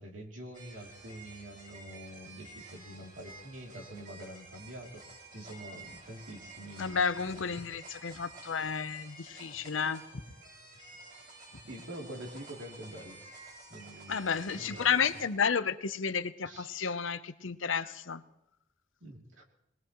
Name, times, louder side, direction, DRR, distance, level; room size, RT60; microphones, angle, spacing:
voice 1, 0.0-5.0 5.3-7.4 11.7-13.2 13.7-15.0 16.4-16.7 19.0-19.4, equal, 75° right, -1 dB, 3.0 m, -46 dB
sound 1, 0.5-15.2, right 3 dB, 50° right, 7.4 m, -51 dB
voice 2, 6.8-10.0 14.1-18.2, left 6 dB, 85° left, 12 dB, 0.8 m, -31 dB
Walk footsteps, 7.4-11.8, left 2 dB, 70° left, 1.3 m, -51 dB
21.5 x 20.5 x 3.1 m, 0.83 s
head